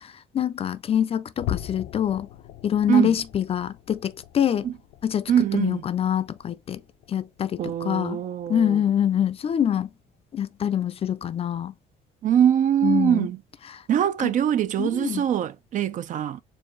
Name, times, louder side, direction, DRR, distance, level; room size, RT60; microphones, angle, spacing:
voice 1, 0.0-2.3 2.6-4.7 5.0-6.8 7.1-8.2 8.5-9.9 10.3-11.7 12.8-13.3 13.7-13.8 14.2-14.3 14.8-15.3, left 9 dB, 35° left, 0.4 m, -25 dB
sound 1, 1.4-8.0 8.4-8.7 9.1-9.2 9.8-9.9, left 12 dB, 85° left, 0.6 m, -40 dB
voice 2, 5.3-5.8 7.6-8.8 12.2-13.4 13.9-16.4, right 9 dB, 50° right, 0.4 m, -23 dB
4.5 x 2.7 x 3.0 m
cardioid pair, 110°, 17 cm